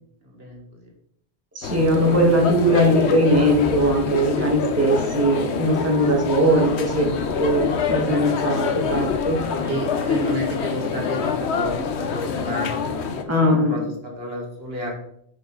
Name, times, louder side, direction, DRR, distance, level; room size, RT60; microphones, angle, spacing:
voice 1, 0.2-0.9 6.3-6.7 9.5-12.7 13.2-14.9, equal, 65° right, -1 dB, 2.2 m, -32 dB
voice 2, 1.5-7.1 7.4-9.4 13.3-13.9, equal, 15° right, -2 dB, 1.7 m, -20 dB
sound 1, 1.6-13.2, left 5 dB, 80° left, 1.1 m, -26 dB
9.8 x 5.4 x 3.9 m, 0.70 s
omnidirectional pair, 1.1 m